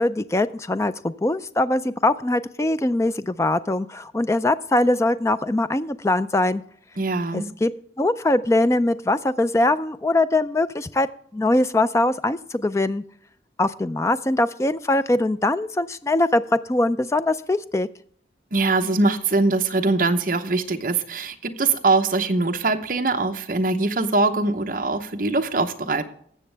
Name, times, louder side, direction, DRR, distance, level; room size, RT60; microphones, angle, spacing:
voice 1, 0.0-6.6 7.3-7.7 8.0-11.1 11.3-13.0 13.6-17.9, left 2 dB, 15° left, 13 dB, 0.3 m, -22 dB
voice 2, 7.0-7.5 18.5-26.0, right 3 dB, 45° right, 5 dB, 0.9 m, -22 dB
19.0 x 7.3 x 3.4 m, 0.64 s
head